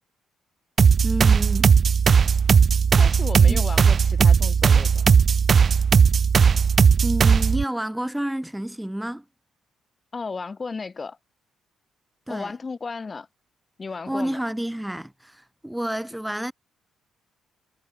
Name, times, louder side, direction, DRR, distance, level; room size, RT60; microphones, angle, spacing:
sound 1, 0.8-7.6, right 6 dB, 45° right, 0.9 m, -17 dB
voice 1, 1.0-1.8 3.4-3.6 7.0-9.2 12.3-12.5 14.1-16.5, right 1 dB, 5° right, 1.0 m, -29 dB
voice 2, 3.0-5.2 10.1-11.2 12.3-13.3 13.8-14.4, left 4 dB, 30° left, 1.7 m, -34 dB
cardioid pair, 90°, 0 cm